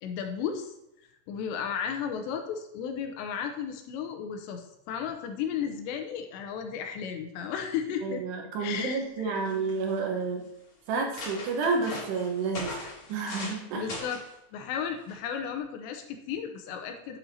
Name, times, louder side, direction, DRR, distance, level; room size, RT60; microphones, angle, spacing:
voice 1, 0.0-0.7 1.3-8.2 8.6-9.4 13.7-14.2 14.5-17.2, left 7 dB, 80° left, 5 dB, 2.9 m, -34 dB
voice 2, 8.0-10.4 10.9-12.8 13.1-13.9, right 4 dB, 70° right, 1 dB, 3.0 m, -30 dB
sound 1, 9.0-9.1 9.4-9.9 10.5-10.6 10.9-13.6 13.9-14.3 15.1-15.3, left 2 dB, 45° left, 3.5 m, -39 dB
9.4 x 8.5 x 2.7 m, 0.86 s
omnidirectional pair, 5.2 m